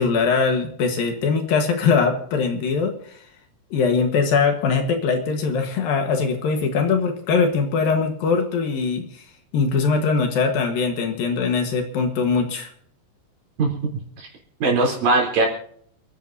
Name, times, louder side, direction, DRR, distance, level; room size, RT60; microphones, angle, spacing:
voice 1, 0.0-3.2 3.7-9.2 9.5-12.7, left 5 dB, 65° left, 5 dB, 3.0 m, -21 dB
voice 2, 13.6-13.9 14.2-14.3 14.6-15.5, right 3 dB, 60° right, 0 dB, 5.2 m, -20 dB
28.5 x 10.5 x 2.7 m, 0.63 s
omnidirectional pair, 4.6 m